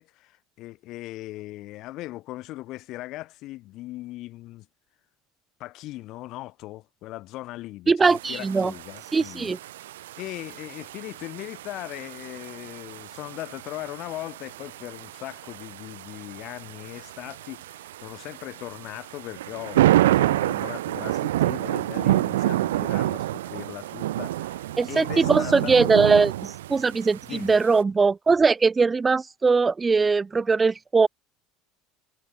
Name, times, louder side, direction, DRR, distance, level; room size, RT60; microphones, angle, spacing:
voice 1, 0.0-4.7 5.6-9.6 10.2-25.8 27.2-27.6, left 17 dB, 60° left, 3.0 m, -39 dB
voice 2, 7.9-8.7 9.1-9.6 24.8-31.1, right 4 dB, 20° right, 1.1 m, -21 dB
sound 1, 8.0-27.8, right 14 dB, 80° right, 0.5 m, -28 dB
hypercardioid pair, 75°, 0 cm